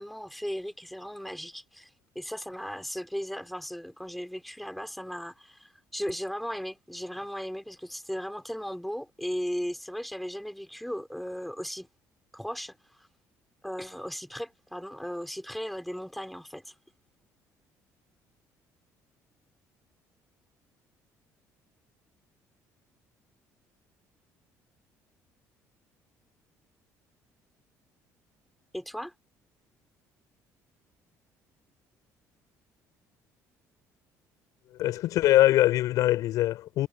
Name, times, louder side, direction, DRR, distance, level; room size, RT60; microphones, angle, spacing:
voice 1, 0.0-1.9 2.2-11.9 12.3-13.1 13.6-16.7 28.7-29.1, equal, ahead, 5.3 m, -36 dB
voice 2, 34.8-36.9, left 14 dB, 70° left, 5.9 m, -22 dB
cardioid pair, 150°, 6 cm